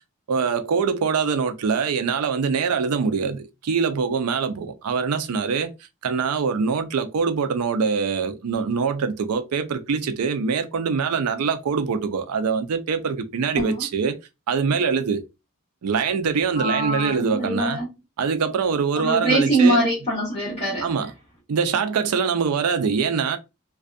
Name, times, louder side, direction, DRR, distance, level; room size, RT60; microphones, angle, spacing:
voice 1, 0.3-5.7 6.0-14.2 14.5-15.2 15.8-17.8 18.2-19.8 20.8-21.1 21.5-23.4, right 5 dB, 85° right, 0.4 m, -23 dB
voice 2, 16.6-17.9 18.9-20.9, right 1 dB, 30° left, 1.0 m, -22 dB
2.5 x 2.3 x 2.4 m
head